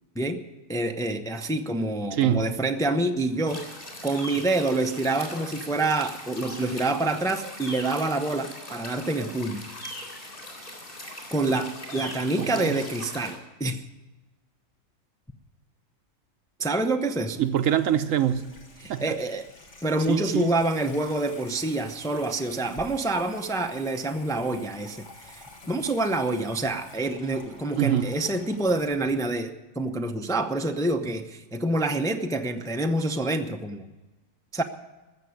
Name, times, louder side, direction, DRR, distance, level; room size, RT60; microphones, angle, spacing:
voice 1, 0.7-3.7 4.0-9.6 11.3-13.8 16.6-17.4 18.8-19.5 19.8-33.9 34.5-34.6, right 2 dB, 5° left, 0.5 m, -27 dB
voice 2, 2.1-2.4 12.4-12.8 17.4-18.4 18.9-19.0 20.1-20.5 27.8-28.1, right 10 dB, 75° right, 1.2 m, -24 dB
sound 1, 3.5-13.4, left 1 dB, 40° left, 3.9 m, -40 dB
Water tap faucet / Sink (filling or washing), 17.0-29.3, left 2 dB, 60° left, 2.2 m, -49 dB
15.0 x 7.0 x 9.4 m
omnidirectional pair, 1.4 m